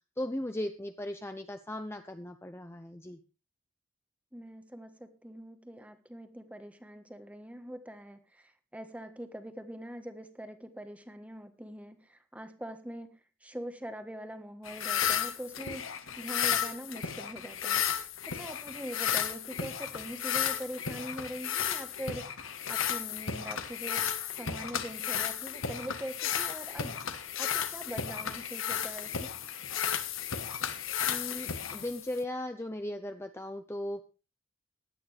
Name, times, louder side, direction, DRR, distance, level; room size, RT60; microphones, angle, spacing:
voice 1, 0.2-3.2 31.1-34.0, left 1 dB, 10° left, 7 dB, 0.7 m, -37 dB
voice 2, 4.3-17.8 18.3-27.0 27.4-29.3, equal, 5° right, 8 dB, 1.3 m, -43 dB
sound 1, 14.6-32.2, left 8 dB, 75° left, 1.4 m, -33 dB
17.0 x 11.5 x 3.4 m, 0.32 s
head